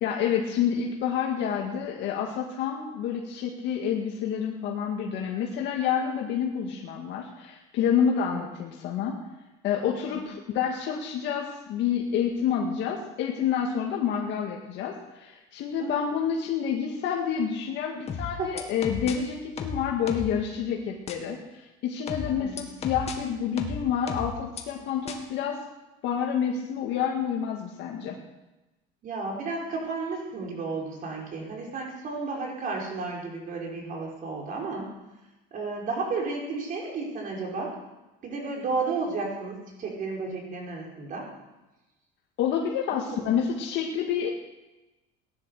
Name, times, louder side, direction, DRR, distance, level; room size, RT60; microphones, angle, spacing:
voice 1, 0.0-9.2 9.6-25.6 26.0-28.2 42.4-44.3, left 8 dB, 60° left, 0 dB, 2.0 m, -28 dB
sound 1, 18.1-19.1 19.6-20.4 21.1-21.2 22.1-23.1 23.6-24.6 25.1-25.2, left 5 dB, 30° left, 2.1 m, -34 dB
voice 2, 18.3-18.6 22.2-22.6 29.0-34.9 35.5-37.8 38.2-41.3 42.9-43.3, right 3 dB, 40° right, -1 dB, 5.1 m, -33 dB
17.5 x 11.0 x 6.6 m, 1.0 s
cardioid pair, 135°, 20 cm